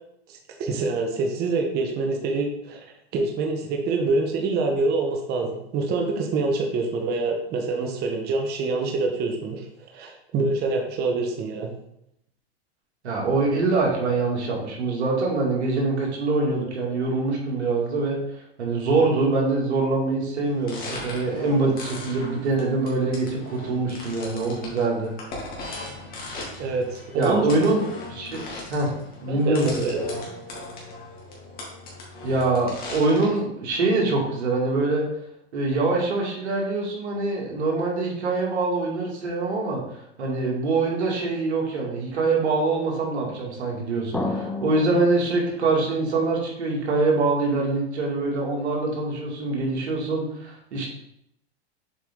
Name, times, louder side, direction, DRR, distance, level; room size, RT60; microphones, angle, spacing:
voice 1, 0.3-2.8 3.1-9.7 9.9-11.7 26.6-27.8 29.3-30.0, right 3 dB, 30° right, 2 dB, 1.0 m, -26 dB
voice 2, 13.0-18.2 18.6-25.1 27.1-28.4 28.7-28.9 29.2-29.9 32.2-35.0 35.5-39.8 40.2-50.9, right 3 dB, 90° right, -2 dB, 2.5 m, -24 dB
sound 1, 20.4-33.4, left 2 dB, 25° left, 2.2 m, -38 dB
sound 2, 44.1-46.5, left 2 dB, 5° left, 0.3 m, -32 dB
7.3 x 4.7 x 3.8 m, 0.78 s
supercardioid pair, 135°, 33 cm